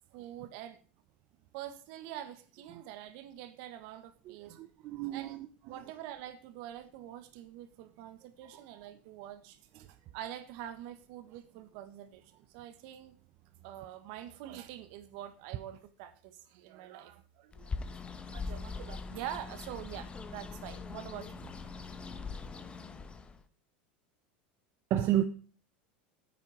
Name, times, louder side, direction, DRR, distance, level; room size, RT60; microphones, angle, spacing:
voice 1, 0.1-0.8 1.5-4.6 5.1-5.4 5.6-9.9 10.1-13.1 13.6-17.7 18.2-21.5, right 11 dB, 65° right, 1.6 m, -45 dB
voice 2, 4.3-5.5 24.9-25.2, right 12 dB, 50° right, 0.8 m, -31 dB
Bird, 17.5-23.4, left 4 dB, 20° left, 1.1 m, -42 dB
9.3 x 9.1 x 5.0 m
supercardioid pair, 115°, 5 cm